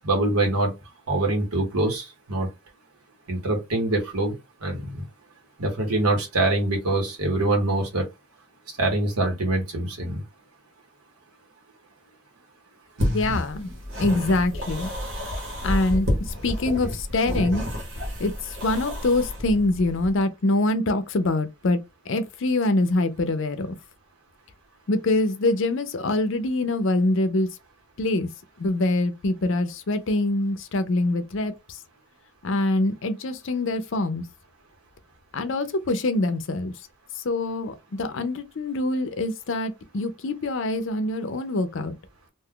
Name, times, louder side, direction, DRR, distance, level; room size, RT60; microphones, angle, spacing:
voice 1, 0.0-0.7 1.1-2.5 3.3-4.3 4.6-5.0 5.6-8.0 8.8-10.2, right 2 dB, 90° right, 1.3 m, -24 dB
voice 2, 13.0-13.7 14.0-14.9 15.6-17.7 18.2-21.8 22.1-23.8 24.9-27.5 28.0-28.3 28.6-31.8 32.4-34.2 35.3-36.7 37.2-42.0, left 2 dB, 60° left, 0.5 m, -24 dB
sound 1, 13.0-20.2, left 1 dB, 60° right, 1.2 m, -30 dB
2.5 x 2.3 x 3.6 m
head